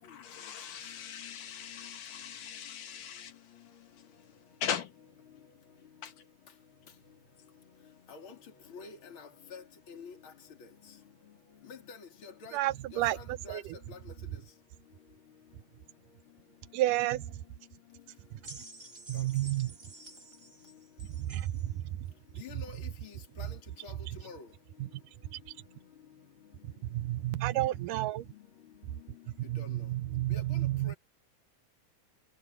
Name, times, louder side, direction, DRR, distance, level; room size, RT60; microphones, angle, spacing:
voice 1, 0.0-3.3 4.6-4.9 6.0-6.1, left 8 dB, 80° left, 3.2 m, -39 dB
voice 2, 8.7-10.3 11.7-12.6 12.9-13.6 13.9-14.0 19.1-19.2 22.4-23.5 23.8-23.9 24.2-24.5 27.3-27.4 29.6-29.8 30.3-31.0, left 5 dB, 40° left, 3.8 m, -47 dB
voice 3, 12.5-13.8 14.3-14.4 16.7-17.5 18.2-18.6 19.1-20.0 21.0-22.8 23.4-23.6 24.1-24.2 24.8-25.7 26.6-28.3 28.9-30.9, right 15 dB, 85° right, 2.3 m, -33 dB
sound 1, 18.4-21.7 22.6-22.7, right 2 dB, 25° right, 0.9 m, -50 dB
omnidirectional pair, 3.7 m